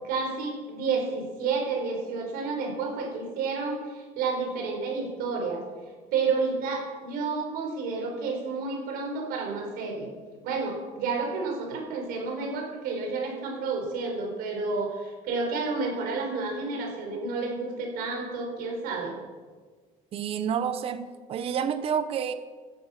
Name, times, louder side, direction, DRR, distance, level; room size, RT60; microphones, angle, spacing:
voice 1, 0.0-5.6 6.1-10.1 10.4-19.2, right 4 dB, 80° right, 2 dB, 5.4 m, -30 dB
voice 2, 20.1-22.3, right 8 dB, 40° right, 11 dB, 0.9 m, -29 dB
17.5 x 12.5 x 6.0 m, 1.5 s
cardioid pair, 175°, 15 cm